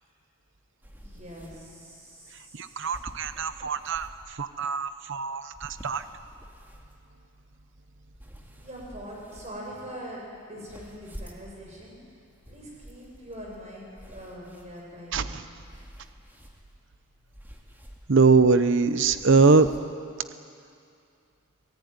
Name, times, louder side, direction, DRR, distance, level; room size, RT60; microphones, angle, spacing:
sound 1, 0.8-19.8, equal, 10° right, 2.2 m, -50 dB
voice 1, 0.9-2.9 8.6-12.0 12.5-13.8 14.1-15.4, equal, 30° right, -2 dB, 7.4 m, -43 dB
voice 2, 2.5-6.0 15.1-15.5 18.1-19.7, right 4 dB, 60° right, 11 dB, 0.8 m, -22 dB
25.5 x 18.5 x 9.5 m, 2.5 s
head